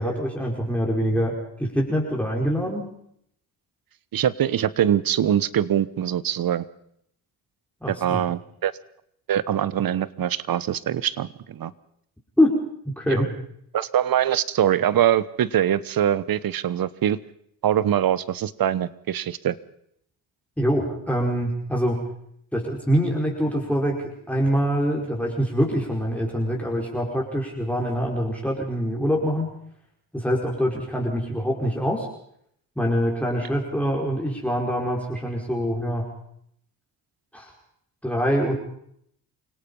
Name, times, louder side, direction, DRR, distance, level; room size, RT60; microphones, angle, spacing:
voice 1, 0.0-2.9 7.8-8.2 12.4-12.6 12.9-13.3 20.6-22.0 22.5-24.0 24.3-29.5 30.1-32.1 32.8-36.1 37.3-37.5 38.0-38.5, equal, 5° left, -2 dB, 5.2 m, -24 dB
voice 2, 4.1-6.6 7.9-8.7 9.3-11.7 13.1-13.2 13.7-17.2 17.6-19.6, right 10 dB, 55° right, 18 dB, 1.2 m, -23 dB
28.0 x 18.0 x 5.6 m, 0.70 s
supercardioid pair, 70°, 42 cm